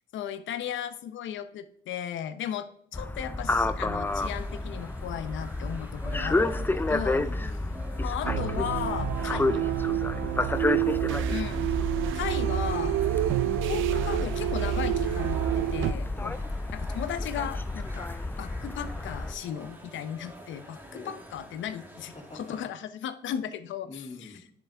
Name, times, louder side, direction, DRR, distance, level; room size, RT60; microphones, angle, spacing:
voice 1, 0.1-7.2 8.0-9.6 11.3-11.7 12.1-13.0 13.6-16.3 16.7-18.1 18.4-24.3, left 9 dB, 75° left, 11 dB, 0.7 m, -36 dB
sound 1, 2.9-19.3, left 2 dB, 10° left, 0.4 m, -31 dB
sound 2, 4.0-22.6, right 1 dB, 10° right, 1.3 m, -47 dB
voice 2, 7.2-7.9 10.2-11.0 16.1-16.7 20.9-21.2 22.1-22.6 23.9-24.4, left 3 dB, 35° left, 1 dB, 2.3 m, -46 dB
sound 3, 8.2-15.9, right 14 dB, 80° right, 0.5 m, -28 dB
10.5 x 7.1 x 3.4 m, 0.65 s
cardioid pair, 90°, 20 cm